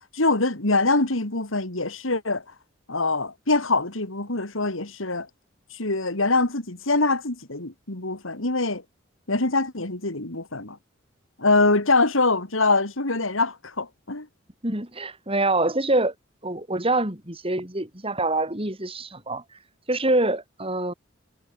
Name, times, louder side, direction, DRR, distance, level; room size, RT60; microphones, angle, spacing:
voice 1, 0.1-2.4 2.9-5.3 5.7-8.8 9.3-10.8 11.4-14.3, left 3 dB, 80° left, 3.3 m, -24 dB
voice 2, 14.6-16.1 16.4-19.4 19.9-20.9, right 2 dB, 30° right, 5.4 m, -25 dB
head